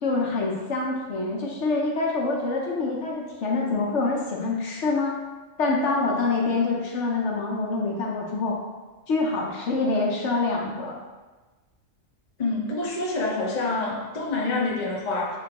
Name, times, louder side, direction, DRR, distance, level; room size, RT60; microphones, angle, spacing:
voice 1, 0.0-5.2 5.6-8.6 9.1-11.0, left 3 dB, 65° left, -2 dB, 1.0 m, -26 dB
voice 2, 12.4-15.4, left 3 dB, 40° left, -3 dB, 0.7 m, -27 dB
7.1 x 2.5 x 2.9 m, 1.2 s
omnidirectional pair, 1.4 m